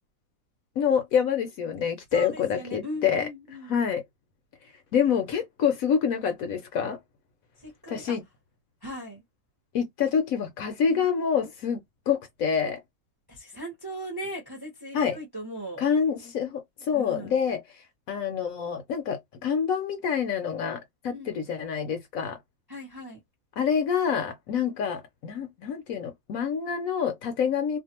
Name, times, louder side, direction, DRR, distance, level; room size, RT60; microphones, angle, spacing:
voice 1, 0.8-3.2 3.7-4.0 4.9-7.0 7.9-8.2 9.7-12.8 14.9-15.2 15.8-17.6 18.1-22.4 23.6-27.8, left 7 dB, 65° left, 1.0 m, -27 dB
voice 2, 2.1-3.8 7.6-8.2 8.8-9.2 10.9-11.1 13.3-15.8 16.9-17.4 21.1-21.4 22.7-23.2, equal, 20° right, 0.7 m, -38 dB
2.6 x 2.4 x 2.8 m
omnidirectional pair, 1.7 m